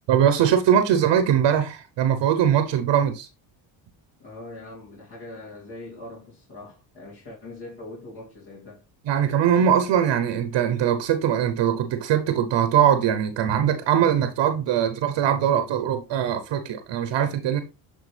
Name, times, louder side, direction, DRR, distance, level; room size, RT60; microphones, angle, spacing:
voice 1, 0.1-3.3 9.1-17.6, right 9 dB, 60° right, 1.0 m, -21 dB
voice 2, 4.2-8.8, left 2 dB, 55° left, 2.8 m, -41 dB
8.3 x 3.4 x 3.3 m
supercardioid pair, 75°, 48 cm